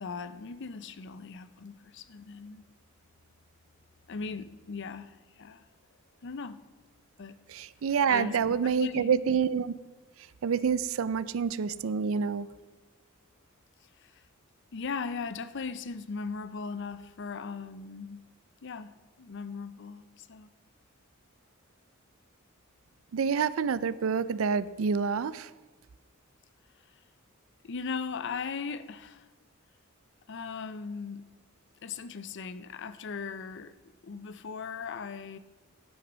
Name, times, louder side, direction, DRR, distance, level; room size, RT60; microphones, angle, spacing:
voice 1, 0.0-2.6 4.1-5.7 6.2-6.6 7.2-7.4 8.1-8.4 8.6-9.2 13.8-14.2 14.7-18.2 18.6-20.5 27.6-29.3 30.3-31.3 31.8-33.8 34.0-35.4, left 5 dB, 60° left, 0.6 m, -38 dB
voice 2, 7.5-9.7 10.4-12.5 23.1-25.5, right 6 dB, 70° right, 0.4 m, -27 dB
11.0 x 6.1 x 6.2 m
head